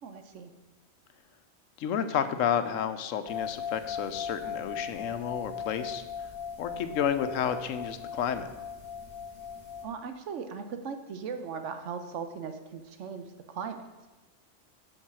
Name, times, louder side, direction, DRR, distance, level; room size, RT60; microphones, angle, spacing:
voice 1, 0.0-0.5 9.8-13.8, right 6 dB, 75° right, 7 dB, 1.1 m, -38 dB
voice 2, 1.8-6.3 6.6-8.5, left 8 dB, 90° left, 10 dB, 1.0 m, -31 dB
sound 1, 3.3-9.8, left 7 dB, 20° left, 2.7 m, -38 dB
7.3 x 5.6 x 6.1 m, 1.1 s
omnidirectional pair, 1.3 m